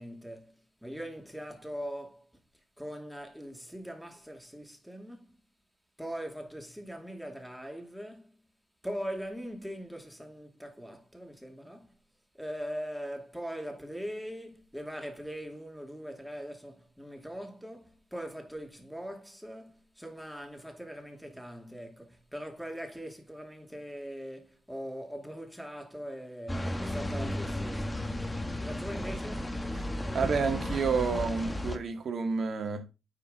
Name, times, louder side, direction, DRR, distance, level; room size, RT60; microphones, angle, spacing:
voice 1, 0.0-2.3 2.8-5.4 6.0-8.4 8.8-12.0 12.4-29.6, equal, ahead, 2.5 m, -41 dB
sound 1, 26.5-31.8, left 1 dB, 15° left, 1.2 m, -34 dB
voice 2, 30.1-32.8, right 5 dB, 60° right, 1.7 m, -30 dB
9.5 x 4.7 x 3.8 m
supercardioid pair, 55°, 0 cm